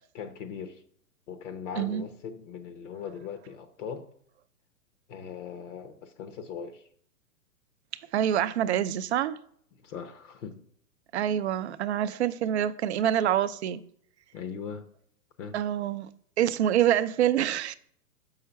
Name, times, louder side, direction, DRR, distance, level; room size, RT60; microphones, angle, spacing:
voice 1, 0.1-0.8 1.3-4.1 5.1-6.9 9.8-10.6 14.3-14.9 15.4-15.6, left 7 dB, 50° left, 0.9 m, -39 dB
voice 2, 8.1-9.4 11.1-13.8 15.5-16.1 16.4-17.7, right 10 dB, 50° right, 0.5 m, -26 dB
6.5 x 5.7 x 4.4 m
hypercardioid pair, 135°, 46 cm